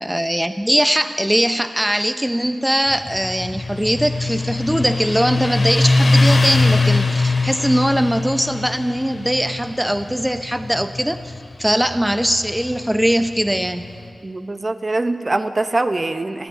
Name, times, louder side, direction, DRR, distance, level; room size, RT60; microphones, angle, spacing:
voice 1, 0.0-11.3 11.6-13.9, equal, 10° right, 9 dB, 0.8 m, -20 dB
Motorcycle, 2.9-14.0, left 3 dB, 65° left, 2.8 m, -21 dB
voice 2, 14.2-16.5, right 2 dB, 40° right, 9 dB, 1.1 m, -23 dB
29.5 x 9.9 x 9.1 m, 2.2 s
cardioid pair, 45°, 0 cm